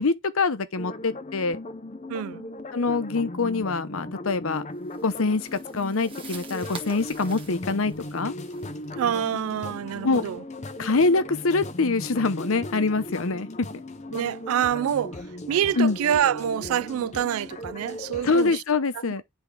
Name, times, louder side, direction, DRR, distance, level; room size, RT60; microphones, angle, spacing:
voice 1, 0.0-1.6 2.7-4.6 5.0-8.3 10.0-10.2 10.8-13.5 15.8-16.0 18.2-19.2, left 3 dB, 75° left, 0.8 m, -24 dB
sound 1, 0.8-18.6, left 1 dB, 30° left, 0.6 m, -38 dB
voice 2, 2.1-2.5 8.9-10.4 14.1-18.6, right 9 dB, 80° right, 0.3 m, -26 dB
sound 2, 4.9-9.8, right 4 dB, 25° right, 1.1 m, -46 dB
10.0 x 3.5 x 3.4 m
head